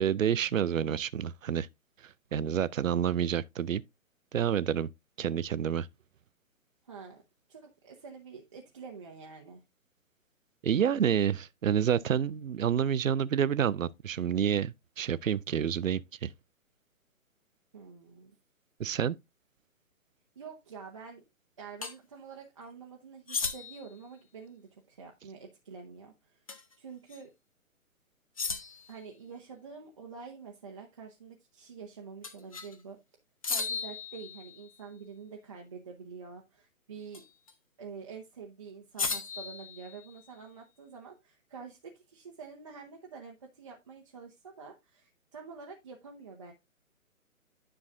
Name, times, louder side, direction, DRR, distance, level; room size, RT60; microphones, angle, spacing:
voice 1, 0.0-1.7 2.0-3.8 4.3-4.9 5.2-5.9 10.6-16.3 18.8-19.2, right 8 dB, 65° right, 0.5 m, -28 dB
voice 2, 6.8-7.2 7.5-9.6 17.7-18.3 20.4-21.2 21.6-26.4 26.8-27.3 28.9-33.0 33.5-37.2 37.8-46.5, right 5 dB, 25° right, 0.7 m, -47 dB
sound 1, 21.8-22.0 23.3-23.9 26.5-26.7 27.1-27.2 28.4-29.0 32.2-32.8 33.4-34.8 37.1-37.5 39.0-40.4, left 5 dB, 25° left, 0.6 m, -36 dB
10.0 x 5.7 x 2.5 m
figure-of-eight pair, 135°, 42 cm